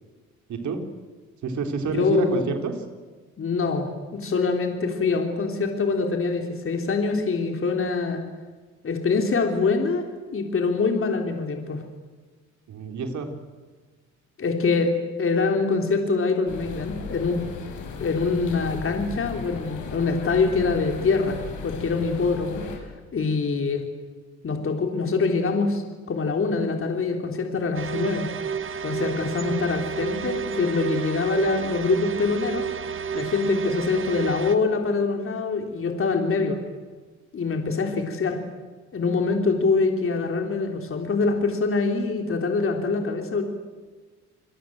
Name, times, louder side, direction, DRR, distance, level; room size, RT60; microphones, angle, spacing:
voice 1, 0.5-0.8 1.4-2.8 12.7-13.3, right 4 dB, 70° right, 5 dB, 3.9 m, -28 dB
voice 2, 1.9-2.5 3.4-8.2 8.8-10.0 10.3-11.8 14.4-17.4 18.0-22.6 23.1-23.8 24.4-28.3 28.8-32.7 33.1-36.6 37.3-38.4 38.9-43.4, left 4 dB, 45° left, 3 dB, 3.7 m, -24 dB
sound 1, 16.5-22.8, left 5 dB, 80° left, 6.1 m, -36 dB
sound 2, 27.7-34.5, right 7 dB, 40° right, 1.8 m, -31 dB
28.0 x 21.5 x 7.9 m, 1.4 s
cardioid pair, 90°, 30 cm